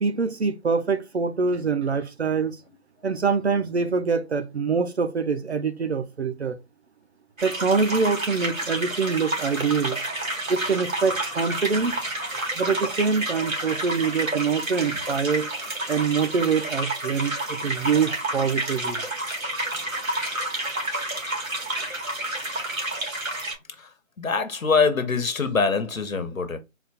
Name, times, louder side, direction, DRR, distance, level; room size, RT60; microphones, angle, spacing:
voice 1, 0.0-2.6 3.0-6.6 7.4-10.0 10.5-11.9 12.6-15.5 15.9-19.0 21.8-21.9, right 5 dB, 55° right, 0.6 m, -24 dB
sound 1, 7.4-23.6, right 1 dB, 90° right, 1.9 m, -30 dB
voice 2, 24.2-26.6, left 5 dB, 85° left, 1.0 m, -24 dB
4.1 x 2.3 x 4.2 m
figure-of-eight pair, 160°, 40 cm